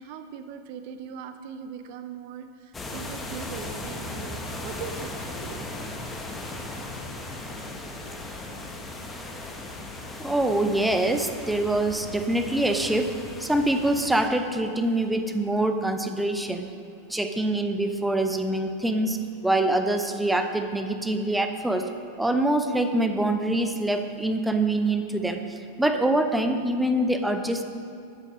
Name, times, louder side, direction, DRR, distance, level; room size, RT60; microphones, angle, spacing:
voice 1, 0.0-5.7, right 7 dB, 45° right, 8 dB, 0.6 m, -40 dB
sound 1, 2.7-14.3, left 2 dB, 15° left, 1.1 m, -37 dB
voice 2, 10.2-16.7 17.1-19.2 19.4-21.9 22.2-27.6, right 1 dB, 5° right, 6 dB, 0.7 m, -25 dB
9.3 x 8.3 x 6.1 m, 2.5 s
figure-of-eight pair, 90°, 0 cm